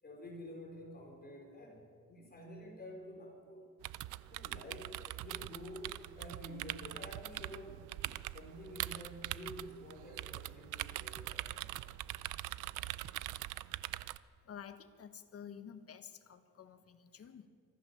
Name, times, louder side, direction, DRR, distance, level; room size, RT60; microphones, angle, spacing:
voice 1, 0.0-3.6 4.3-7.9 8.3-11.9 17.1-17.2, equal, 30° left, 0 dB, 5.1 m, -50 dB
sound 1, 3.8-14.2, right 16 dB, 85° right, 0.6 m, -43 dB
voice 2, 14.4-17.5, left 8 dB, 50° left, 9 dB, 1.5 m, -51 dB
24.5 x 14.5 x 7.3 m, 2.2 s
cardioid pair, 90°, 30 cm